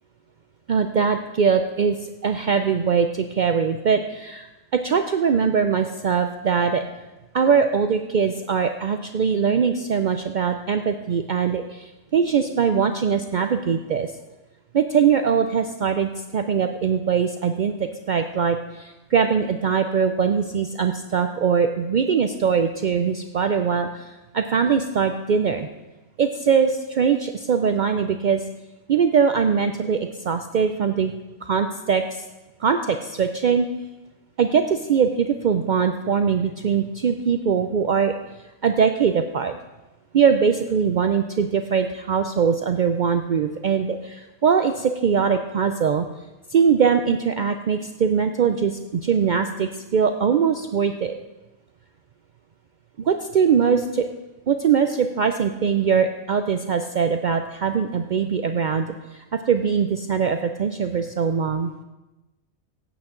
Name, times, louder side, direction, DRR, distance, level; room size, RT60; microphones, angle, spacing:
voice 1, 0.7-4.5 4.7-6.8 7.3-14.1 14.7-25.7 26.2-28.4 28.9-31.1 31.4-32.2 32.6-33.7 34.4-38.1 38.6-39.6 40.1-46.1 46.5-51.1 53.0-54.1 54.5-58.9 59.1-61.7, right 6 dB, 75° right, 7 dB, 0.4 m, -22 dB
15.5 x 9.1 x 3.8 m, 1.1 s
omnidirectional pair, 1.4 m